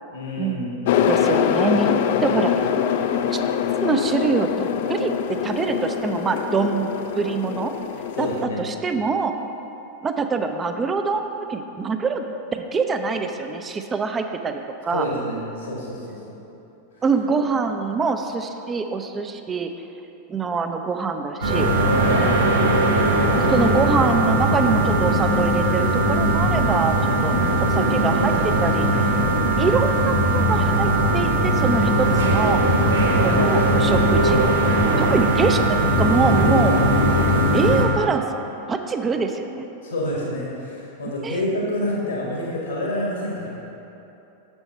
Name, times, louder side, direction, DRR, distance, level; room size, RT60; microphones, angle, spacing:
voice 1, 0.1-0.8 8.1-8.6 14.9-16.4 16.9-17.0 22.0-22.4 27.2-27.6 33.2-33.9 39.8-43.5, left 1 dB, 75° left, -4 dB, 1.3 m, -28 dB
sound 1, 0.8-8.4, left 8 dB, 50° left, 0.3 m, -23 dB
voice 2, 1.1-2.0 2.2-2.6 3.3-3.4 3.8-5.1 5.4-6.9 7.1-7.7 8.2-8.3 8.6-9.4 10.0-12.2 12.5-15.1 17.0-19.7 20.3-21.7 23.3-27.3 27.6-29.1 29.6-32.6 33.2-34.4 35.0-36.9 37.5-38.3 38.7-39.6 41.2-41.4, right 4 dB, 20° right, 6 dB, 0.4 m, -24 dB
sound 2, 21.4-37.8, right 1 dB, 75° right, 1.2 m, -19 dB
7.1 x 6.9 x 4.2 m, 2.9 s
figure-of-eight pair, 90°, 0 cm